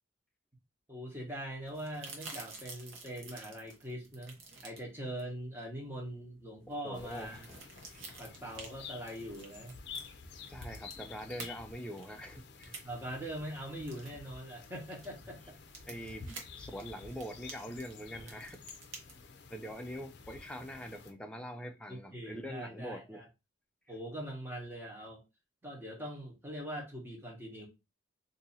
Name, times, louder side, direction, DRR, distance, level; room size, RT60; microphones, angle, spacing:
voice 1, 0.9-4.4 4.6-7.5 8.2-9.7 12.8-15.6 21.9-23.2 23.9-25.2 25.6-27.7, right 1 dB, 10° right, 1.0 m, -42 dB
sound 1, 1.6-19.1, right 4 dB, 80° right, 1.0 m, -51 dB
voice 2, 6.8-7.4 7.9-8.1 10.5-12.8 15.9-18.6 19.5-23.2, equal, 5° left, 0.4 m, -44 dB
sound 2, 6.9-21.1, left 5 dB, 60° left, 0.5 m, -51 dB
2.7 x 2.6 x 4.1 m
head